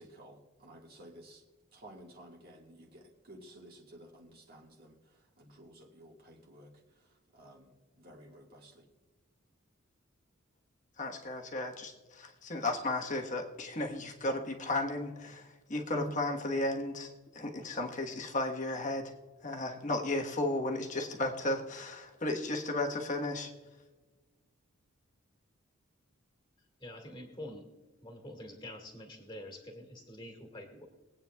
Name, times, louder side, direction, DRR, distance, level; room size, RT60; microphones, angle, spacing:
voice 1, 0.0-1.4 1.7-6.7 7.3-8.9, right 1 dB, 50° right, -1 dB, 1.8 m, -54 dB
voice 2, 11.0-19.1 19.4-23.5, left 2 dB, 40° left, 2 dB, 1.2 m, -34 dB
voice 3, 26.8-27.7 28.0-30.9, left 1 dB, 20° left, 2 dB, 1.9 m, -46 dB
22.0 x 8.8 x 2.3 m, 1.2 s
head